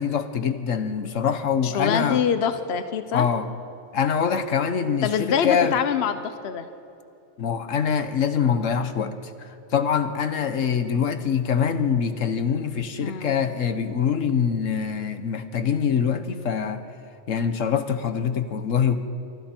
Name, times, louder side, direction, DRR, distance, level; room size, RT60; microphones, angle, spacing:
voice 1, 0.0-2.2 3.1-3.5 3.9-5.8 7.4-16.8 17.3-19.0, left 7 dB, 80° left, 9 dB, 1.5 m, -24 dB
voice 2, 1.6-3.3 5.0-6.7 13.0-13.4, left 7 dB, 55° left, 10 dB, 1.1 m, -25 dB
26.5 x 24.5 x 4.5 m, 2.6 s
omnidirectional pair, 1.3 m